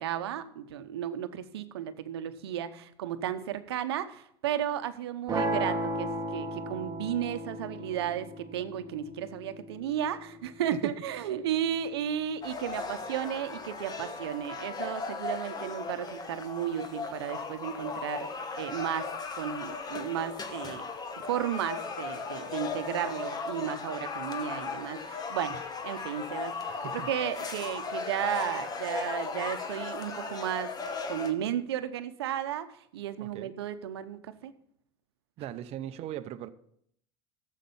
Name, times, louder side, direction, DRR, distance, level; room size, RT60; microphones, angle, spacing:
voice 1, 0.0-20.8 21.3-30.7 31.1-32.7 32.9-34.5, right 10 dB, 90° right, 0.9 m, -34 dB
sound 1, 5.3-11.3, right 1 dB, 25° right, 1.4 m, -35 dB
sound 2, 12.4-31.3, left 4 dB, 30° left, 1.4 m, -37 dB
voice 2, 26.7-27.1 33.2-33.5 35.4-36.5, right 12 dB, 55° right, 0.7 m, -39 dB
11.5 x 7.5 x 5.5 m
supercardioid pair, 95°, 13 cm